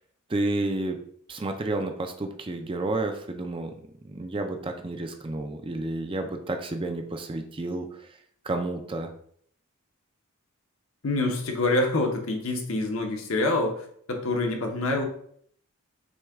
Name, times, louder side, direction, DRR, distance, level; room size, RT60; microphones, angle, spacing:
voice 1, 0.3-1.0 1.3-3.7 4.0-8.1 8.4-9.1, right 2 dB, 25° right, 5 dB, 0.4 m, -30 dB
voice 2, 11.0-15.0, left 2 dB, 65° left, 3 dB, 0.8 m, -26 dB
6.2 x 2.3 x 3.5 m, 0.63 s
head